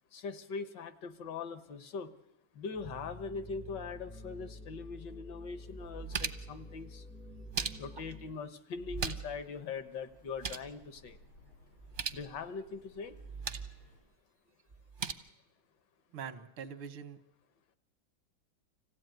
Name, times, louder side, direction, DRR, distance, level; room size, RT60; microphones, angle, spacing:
voice 1, 0.1-2.1 2.5-7.1 7.8-11.2 12.1-13.2, left 5 dB, 65° left, 12 dB, 1.5 m, -41 dB
sound 1, 2.8-8.3, left 1 dB, 10° right, 0.3 m, -49 dB
sound 2, 5.1-5.2 5.7-6.6 7.3-8.1 8.8-9.4 9.7-9.8 10.1-10.7 11.8-12.2 13.1-13.8 14.7-15.1, right 5 dB, 45° right, 0.7 m, -39 dB
sound 3, 9.0-14.0, left 1 dB, 85° left, 7.3 m, -60 dB
voice 2, 16.1-17.2, right 7 dB, 85° right, 9 dB, 2.1 m, -43 dB
25.5 x 16.0 x 9.2 m, 0.93 s
omnidirectional pair, 2.3 m